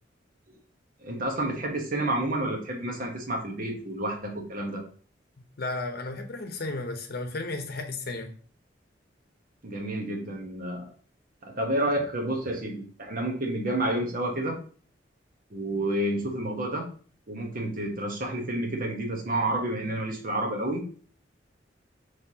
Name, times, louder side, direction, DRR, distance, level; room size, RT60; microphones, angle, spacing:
voice 1, 1.0-4.8 9.6-10.9 11.4-14.6 15.5-16.9 17.3-20.8, right 1 dB, 50° right, 2 dB, 1.1 m, -30 dB
voice 2, 5.6-8.3, left 2 dB, 60° left, 6 dB, 0.8 m, -33 dB
5.8 x 3.3 x 2.8 m, 0.43 s
head